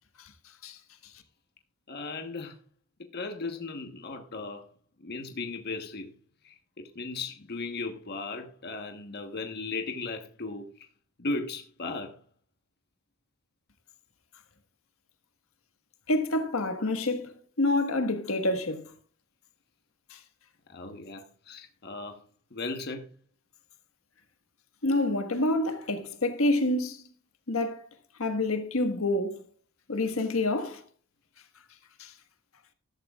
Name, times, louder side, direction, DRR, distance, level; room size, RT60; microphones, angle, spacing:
voice 1, 1.9-2.6 3.0-4.7 5.0-6.1 6.4-10.7 11.2-12.2 20.7-22.2 22.5-23.1, left 3 dB, 50° left, 1.2 m, -36 dB
voice 2, 16.1-18.9 20.1-20.2 24.8-27.0 27.5-27.9 28.2-29.4 29.9-30.8 32.0-32.1, left 2 dB, 80° left, 1.6 m, -28 dB
14.0 x 13.0 x 2.4 m
head